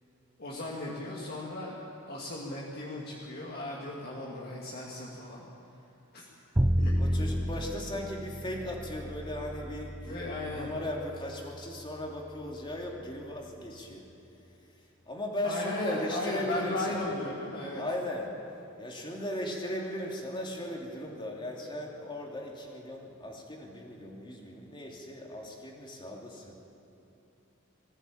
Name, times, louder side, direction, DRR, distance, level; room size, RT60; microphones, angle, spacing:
voice 1, 0.4-5.5 6.1-6.2 6.8-6.9 10.1-10.7 15.4-17.8, left 2 dB, 50° left, -4 dB, 2.5 m, -36 dB
Bowed string instrument, 6.5-12.7, equal, 10° right, 0.5 m, -32 dB
voice 2, 7.0-14.1 14.6-17.1 17.8-18.3 18.8-26.6, left 1 dB, 25° left, -1 dB, 2.9 m, -37 dB
20.0 x 15.0 x 8.8 m, 2.9 s
head